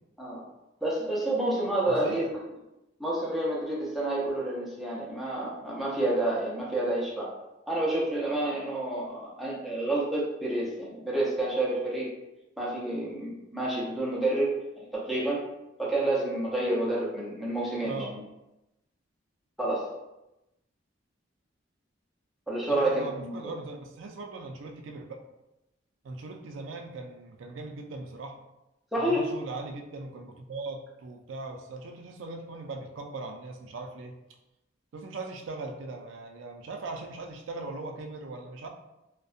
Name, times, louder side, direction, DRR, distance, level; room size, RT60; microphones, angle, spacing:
voice 1, 0.8-2.4 3.0-7.3 7.7-12.1 12.6-14.5 14.8-15.4 15.8-18.2 19.6-19.9 22.5-23.4 28.9-29.3, right 1 dB, ahead, -7 dB, 0.5 m, -29 dB
voice 2, 1.9-2.3 17.8-18.2 22.7-25.2 26.0-28.4 29.0-34.1 34.9-38.7, right 3 dB, 85° right, 3 dB, 0.4 m, -39 dB
2.6 x 2.1 x 2.4 m, 0.96 s
head